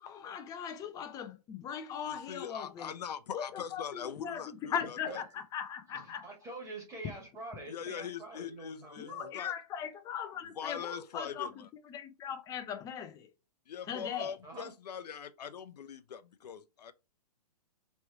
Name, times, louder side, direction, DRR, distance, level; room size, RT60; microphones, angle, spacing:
voice 1, 0.0-2.9 3.3-4.4 4.7-6.2 9.0-11.6 11.9-13.3 13.9-14.3, left 8 dB, 15° left, 0.5 m, -39 dB
voice 2, 2.0-5.2 7.7-9.5 10.5-11.7 13.7-16.9, left 8 dB, 80° left, 0.6 m, -42 dB
voice 3, 4.8-5.2 5.9-9.3 14.4-14.7, right 2 dB, 15° right, 1.6 m, -46 dB
3.2 x 3.1 x 4.4 m
hypercardioid pair, 140°, 21 cm